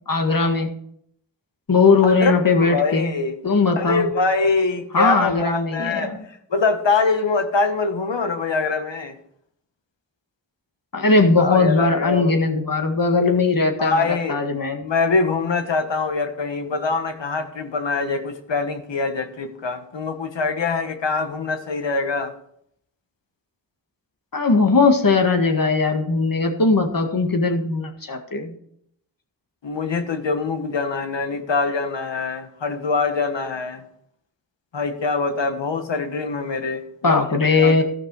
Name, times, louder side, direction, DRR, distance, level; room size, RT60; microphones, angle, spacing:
voice 1, 0.1-0.7 1.7-3.1 3.4-4.1 4.9-6.2 10.9-14.8 24.3-28.5 37.0-37.8, left 3 dB, 50° left, 4 dB, 1.9 m, -19 dB
voice 2, 2.0-3.3 3.8-6.1 6.5-9.2 11.4-12.3 13.8-14.4 14.8-22.3 29.6-33.8 34.7-37.8, left 4 dB, 75° left, 7 dB, 1.4 m, -24 dB
15.0 x 6.0 x 4.8 m, 0.69 s
cardioid pair, 55°, 44 cm